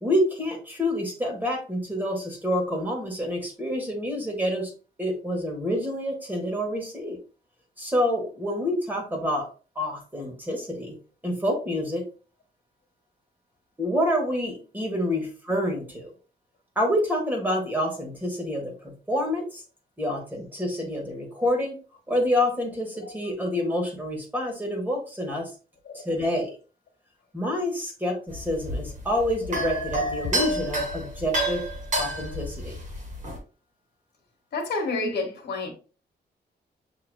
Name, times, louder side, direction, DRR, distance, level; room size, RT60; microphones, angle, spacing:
voice 1, 0.0-4.7 5.0-7.2 7.8-9.5 9.7-11.0 11.2-12.1 13.8-16.1 16.8-19.6 20.0-21.8 22.1-25.5 25.9-26.5 27.3-31.6 32.0-32.8, left 1 dB, 10° right, 1.3 m, -27 dB
sound 1, 28.3-33.4, right 1 dB, 45° right, 1.5 m, -29 dB
voice 2, 34.5-35.7, left 3 dB, 70° left, 1.4 m, -29 dB
7.3 x 2.9 x 2.2 m
wide cardioid pair, 160°, 18 cm